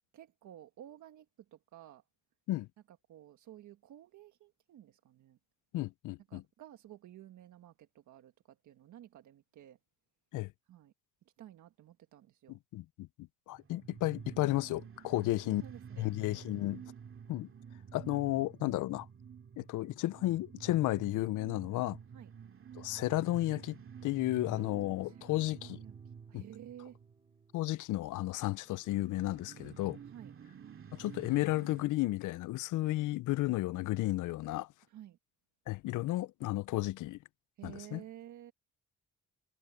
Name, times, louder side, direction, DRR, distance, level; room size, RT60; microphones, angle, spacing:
voice 1, 0.1-1.3 1.5-2.0 2.9-5.4 6.3-8.3 8.6-9.8 10.7-10.9 11.4-12.6 15.1-16.2 22.1-22.3 25.0-25.9 26.3-27.0 30.0-30.3 34.9-35.2 37.6-38.5, right 12 dB, 75° right, 1.6 m, -53 dB
voice 2, 5.7-6.4 10.3-10.5 12.5-15.6 16.0-16.8 17.3-17.5 17.9-19.1 19.6-22.0 22.8-25.8 26.3-26.4 27.5-30.0 30.9-34.7 35.7-37.2 37.6-38.0, left 17 dB, 85° left, 0.6 m, -33 dB
sound 1, 13.5-27.5 28.1-31.8, right 7 dB, 45° right, 2.4 m, -50 dB
Piano, 24.5-30.8, right 2 dB, 20° right, 3.8 m, -63 dB
cardioid pair, 90°, 30 cm